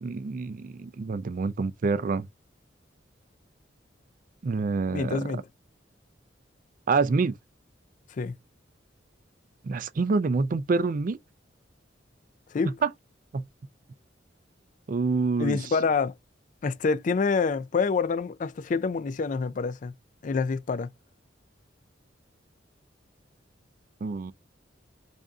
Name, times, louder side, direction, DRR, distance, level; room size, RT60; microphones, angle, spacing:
voice 1, 0.0-2.3 4.4-5.2 6.9-7.3 9.6-11.2 12.8-12.9 13.3-13.5 14.9-15.6 24.0-24.3, right 4 dB, 45° right, 0.4 m, -26 dB
voice 2, 4.9-5.5 8.2-8.4 12.5-12.8 15.4-16.1 16.6-19.9 20.2-20.9, left 4 dB, 45° left, 0.4 m, -27 dB
3.5 x 2.6 x 3.5 m
head